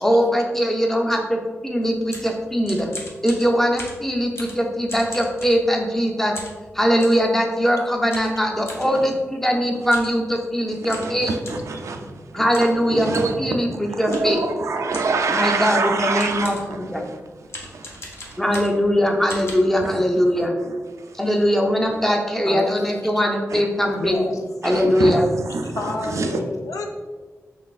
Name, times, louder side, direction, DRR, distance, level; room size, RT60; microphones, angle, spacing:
voice 1, 0.0-2.9 3.2-6.3 6.7-11.3 12.3-13.1 13.4-14.4 15.3-17.0 18.4-20.5 21.2-24.2 24.6-25.2, equal, 5° left, 0.5 m, -21 dB
sound 1, 1.8-6.0 6.3-7.3 8.1-8.9 9.8-10.2 10.4-10.5 10.9-11.7 12.5-12.8 13.1-13.4 14.1-14.4 14.9-15.3 15.8-15.9 16.2-16.8 17.5-18.9 19.3-19.5, left 1 dB, 55° left, 0.8 m, -38 dB
voice 2, 10.7-12.5 12.8-18.4 19.8-21.2 21.9-22.0 23.5-23.7 24.0-24.1 24.6-26.4, right 3 dB, 70° right, 0.4 m, -27 dB
voice 3, 22.5-22.9 24.0-24.4 25.8-26.9, left 3 dB, 85° left, 0.5 m, -29 dB
4.1 x 3.3 x 2.4 m
wide cardioid pair, 95°, 5 cm